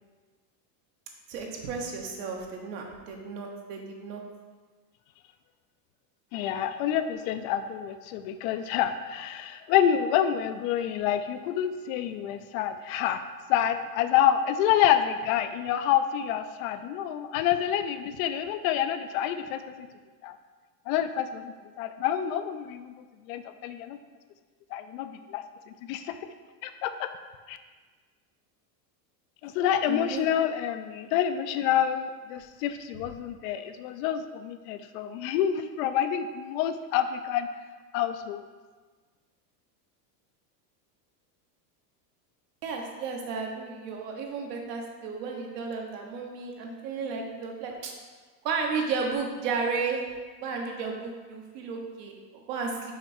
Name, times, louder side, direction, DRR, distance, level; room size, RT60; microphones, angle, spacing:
voice 1, 1.3-4.2 29.9-30.3 42.6-47.9 48.4-50.0 50.4-52.9, right 4 dB, 70° right, 1 dB, 1.3 m, -33 dB
voice 2, 6.3-13.2 13.5-19.9 20.2-20.4 20.9-22.9 23.3-24.0 24.7-25.4 25.8-26.2 26.6-27.1 27.5-27.6 29.4-37.5 37.9-38.5, left 10 dB, 60° left, 10 dB, 0.5 m, -28 dB
5.8 x 4.7 x 4.4 m, 1.4 s
supercardioid pair, 150°, 49 cm